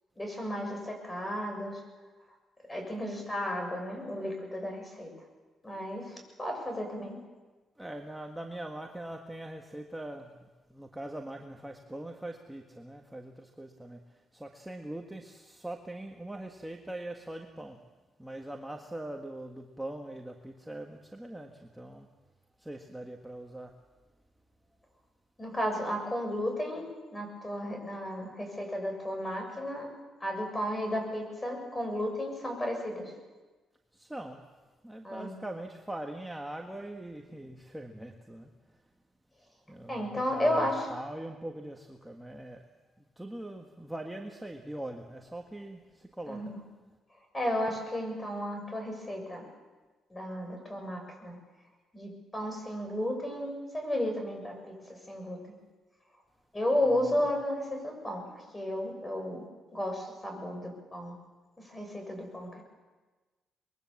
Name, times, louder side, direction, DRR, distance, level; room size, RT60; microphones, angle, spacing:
voice 1, 0.2-1.8 2.7-5.1 5.6-7.2 25.4-26.9 27.1-29.9 30.2-33.1 35.0-35.3 39.9-40.9 46.3-46.6 47.3-49.4 50.1-51.4 51.9-55.6 56.5-59.4 59.7-61.1 61.7-62.6, left 1 dB, 15° left, 3 dB, 7.3 m, -33 dB
voice 2, 7.8-10.3 10.7-14.0 14.3-17.8 18.2-22.1 22.6-23.7 33.9-34.4 34.8-38.5 39.7-42.6 43.0-46.4, right 1 dB, 5° right, 2 dB, 1.7 m, -42 dB
24.5 x 22.0 x 7.3 m, 1.3 s
cardioid pair, 90°, 0 cm